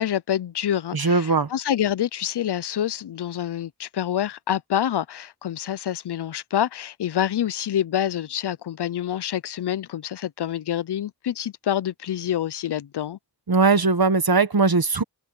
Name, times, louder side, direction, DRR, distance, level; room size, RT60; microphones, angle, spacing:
voice 1, 0.0-13.2, left 10 dB, 80° left, 0.5 m, -27 dB
voice 2, 0.9-1.5 13.5-15.0, right 4 dB, 60° right, 1.3 m, -19 dB
wide cardioid pair, 45°, 40 cm